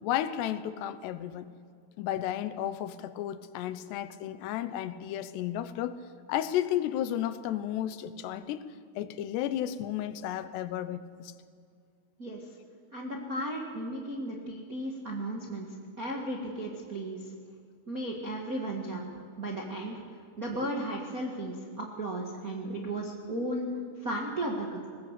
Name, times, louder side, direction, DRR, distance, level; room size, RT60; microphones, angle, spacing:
voice 1, 0.0-1.5 2.0-6.0 6.3-8.7 9.0-11.3, left 11 dB, 80° left, 13 dB, 3.0 m, -33 dB
voice 2, 12.9-15.7 16.0-17.3 17.9-19.1 19.4-20.0 20.4-23.7 24.0-24.9, right 1 dB, 45° right, -1 dB, 1.1 m, -35 dB
20.5 x 18.0 x 8.2 m, 2.2 s
omnidirectional pair, 4.8 m